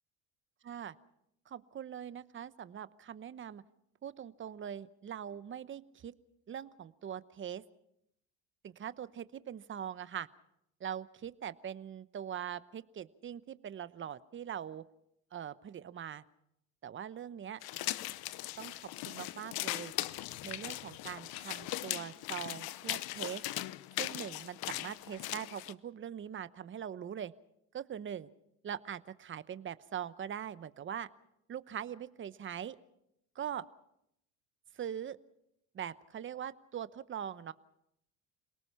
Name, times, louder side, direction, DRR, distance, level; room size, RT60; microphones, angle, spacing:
voice 1, 0.6-1.0 1.5-3.6 4.0-6.1 6.5-7.6 8.6-10.3 10.8-14.8 15.3-16.2 16.8-17.6 18.6-19.9 20.4-23.4 24.0-27.3 27.7-28.3 28.6-31.1 31.5-32.8 33.3-33.7 34.7-35.2 35.7-37.5, right 9 dB, 30° right, 15 dB, 0.9 m, -42 dB
sound 1, 17.6-25.7, left 16 dB, 65° left, 0.9 m, -39 dB
27.5 x 19.0 x 5.7 m, 0.78 s
cardioid pair, 120°, 40 cm